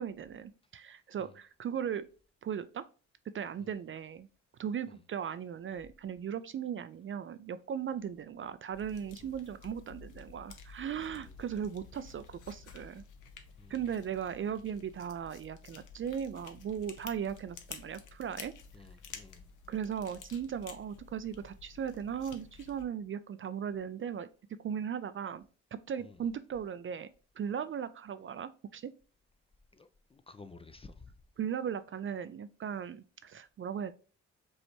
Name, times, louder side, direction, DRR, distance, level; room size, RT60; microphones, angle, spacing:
voice 1, 0.0-2.1 2.4-2.8 3.3-4.3 4.6-13.0 13.7-18.5 19.7-24.3 24.6-25.4 25.7-27.1 27.4-28.9 31.4-33.9, right 8 dB, 35° right, 0.4 m, -37 dB
sound 1, 8.7-22.8, left 6 dB, 60° left, 0.9 m, -52 dB
voice 2, 11.0-11.3 13.6-13.7 18.7-19.4 26.0-26.2 29.7-31.1, left 3 dB, 15° left, 0.4 m, -53 dB
5.3 x 3.2 x 2.9 m
hypercardioid pair, 45°, 36 cm